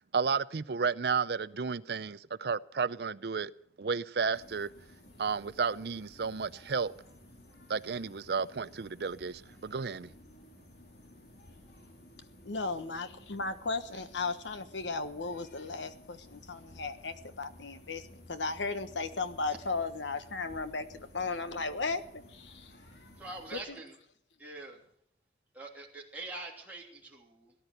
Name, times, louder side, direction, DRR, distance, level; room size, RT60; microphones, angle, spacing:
voice 1, 0.1-3.5 3.8-4.7 5.2-6.9 7.7-10.1, right 5 dB, 60° right, 0.5 m, -32 dB
sound 1, 4.3-23.6, left 1 dB, 55° left, 2.9 m, -55 dB
voice 2, 12.4-18.0 18.3-22.0 22.3-22.7, left 3 dB, 80° left, 1.3 m, -35 dB
voice 3, 23.2-24.0 24.4-24.8 25.5-27.5, right 2 dB, 10° right, 3.0 m, -44 dB
18.0 x 11.0 x 6.6 m
head